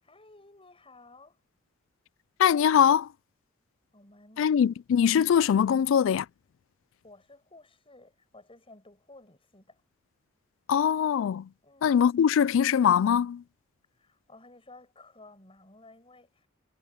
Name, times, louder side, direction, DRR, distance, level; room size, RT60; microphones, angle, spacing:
voice 1, 0.0-1.4 3.9-4.5 7.0-9.8 11.6-12.0 14.0-16.5, left 2 dB, 30° left, 7.6 m, -54 dB
voice 2, 2.4-3.1 4.4-6.3 10.7-11.5 11.8-13.4, left 8 dB, 75° left, 0.3 m, -22 dB
head